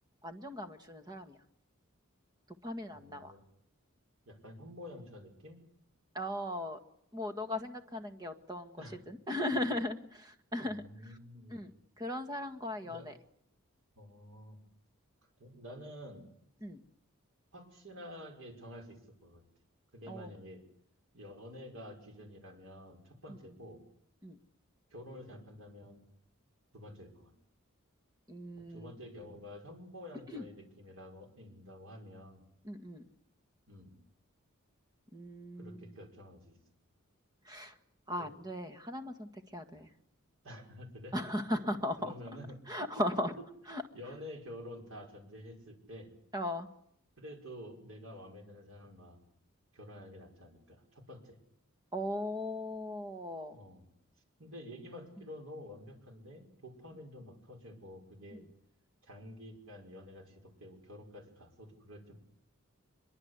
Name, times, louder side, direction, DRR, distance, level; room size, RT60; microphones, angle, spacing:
voice 1, 0.2-1.4 2.6-3.3 6.1-6.8 7.1-10.8 11.5-11.7 12.0-13.1 16.6-16.8 20.1-20.3 24.2-24.4 28.3-28.9 30.3-30.4 32.6-33.0 35.1-36.0 37.4-37.8 38.1-39.9 41.1-42.1 42.7-43.3 43.7-43.8 46.3-46.7 51.9-53.6, left 1 dB, 20° right, 8 dB, 1.7 m, -37 dB
voice 2, 2.9-3.4 4.3-5.6 8.8-9.0 10.6-11.6 12.8-13.1 14.0-14.6 15.4-16.3 17.5-19.4 19.9-20.6 21.1-23.8 24.9-26.0 26.7-27.3 28.6-32.4 33.7-34.0 35.6-36.6 38.2-38.3 40.4-41.1 42.0-42.6 43.2-43.5 43.9-46.1 47.2-49.2 49.7-51.4 53.5-53.9 54.4-58.4 59.0-62.1, left 1 dB, 70° right, 3 dB, 5.5 m, -49 dB
24.5 x 22.5 x 8.2 m, 0.72 s
head